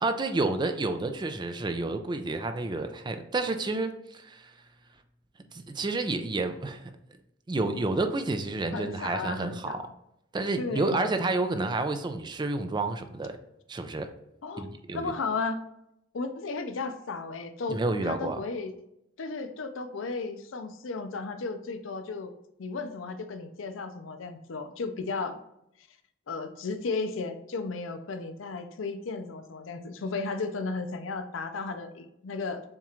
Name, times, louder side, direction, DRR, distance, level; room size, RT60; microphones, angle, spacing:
voice 1, 0.0-4.5 5.5-6.9 7.5-9.8 10.3-13.4 13.7-14.1 14.6-15.1 17.7-18.4, right 2 dB, 25° right, 8 dB, 0.4 m, -30 dB
voice 2, 8.7-9.8 10.6-11.1 14.4-14.7 14.9-15.6 16.1-18.7 19.2-22.3 22.6-25.4 26.3-32.6, left 4 dB, 80° left, 8 dB, 0.5 m, -34 dB
7.2 x 2.4 x 3.0 m, 0.80 s
head